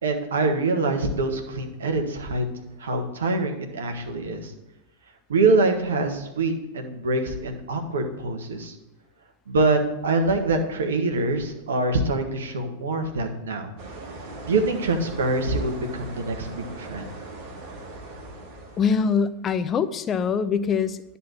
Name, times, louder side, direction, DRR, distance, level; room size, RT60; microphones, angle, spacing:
voice 1, 0.0-2.4 2.8-4.5 5.3-8.7 9.5-13.7 14.4-17.1, right 2 dB, 65° right, 5 dB, 1.4 m, -25 dB
sound 1, 13.8-19.1, right 2 dB, 45° right, 2.4 m, -40 dB
voice 2, 18.8-21.2, left 6 dB, 25° left, 12 dB, 0.5 m, -24 dB
10.0 x 4.2 x 7.6 m, 0.92 s
figure-of-eight pair, 90°, 0 cm